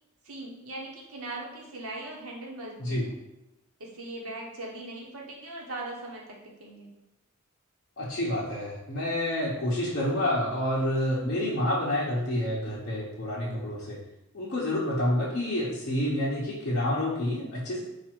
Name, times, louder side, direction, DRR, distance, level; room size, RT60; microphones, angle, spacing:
voice 1, 0.2-2.9 3.8-6.9, right 2 dB, 80° right, -1 dB, 1.1 m, -40 dB
voice 2, 8.0-14.0 14.3-17.8, left 1 dB, 50° left, -8 dB, 0.8 m, -28 dB
4.9 x 2.5 x 4.5 m, 0.95 s
head